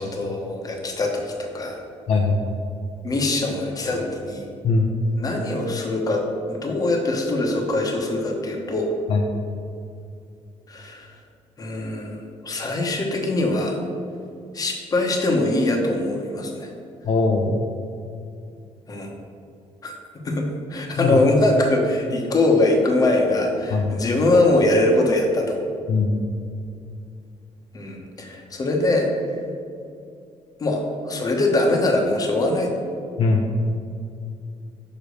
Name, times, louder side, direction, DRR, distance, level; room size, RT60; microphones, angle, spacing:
voice 1, 0.0-1.8 3.0-4.4 5.2-8.9 10.7-11.1 11.6-13.8 14.5-16.7 18.9-19.1 19.8-25.6 27.7-29.4 30.6-32.7, left 2 dB, 30° left, 2 dB, 1.0 m, -22 dB
voice 2, 2.1-2.4 4.6-4.9 9.1-9.2 17.1-17.6 21.0-21.2 23.7-24.0 25.9-26.2 33.2-33.5, left 3 dB, 55° left, 0 dB, 0.7 m, -20 dB
5.6 x 5.1 x 6.4 m, 2.4 s
cardioid pair, 145°, 12 cm